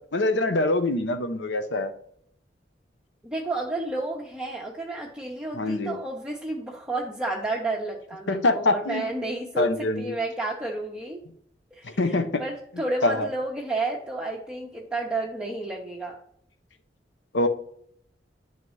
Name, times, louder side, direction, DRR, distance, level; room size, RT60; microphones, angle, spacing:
voice 1, 0.1-1.9 5.5-6.0 8.3-9.0 9.6-10.2 11.8-12.4 13.0-13.3 17.3-17.5, left 2 dB, 90° left, 8 dB, 0.8 m, -24 dB
voice 2, 3.2-9.7 10.0-11.2 11.7-16.2, right 2 dB, 5° right, -4 dB, 0.8 m, -31 dB
11.0 x 4.0 x 3.2 m, 0.66 s
head